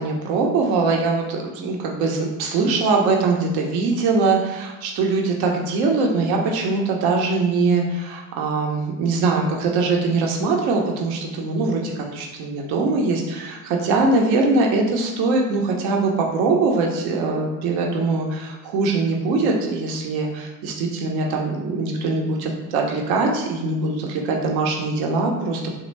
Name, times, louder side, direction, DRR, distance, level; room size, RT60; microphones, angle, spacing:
voice 1, 0.0-25.8, right 3 dB, 50° right, 1 dB, 0.8 m, -22 dB
3.1 x 2.3 x 3.2 m, 1.1 s
hypercardioid pair, 90°, 50 cm